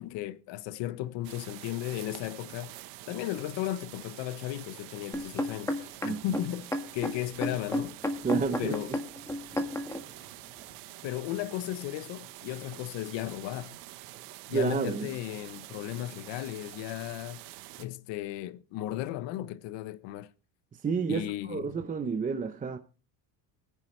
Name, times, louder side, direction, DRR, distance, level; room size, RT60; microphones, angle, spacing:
voice 1, 0.0-2.8 3.1-8.0 8.6-8.9 11.0-13.8 14.5-17.4 17.8-20.3 21.1-21.8, left 14 dB, 60° left, 1.0 m, -35 dB
sound 1, 1.2-17.9, right 17 dB, 85° right, 1.3 m, -47 dB
sound 2, 5.1-10.0 10.7-10.8, left 1 dB, 5° left, 1.6 m, -32 dB
voice 2, 6.0-6.4 8.2-8.8 14.5-15.1 20.8-22.8, right 5 dB, 15° right, 0.7 m, -30 dB
21.5 x 11.0 x 3.2 m
cardioid pair, 135°, 49 cm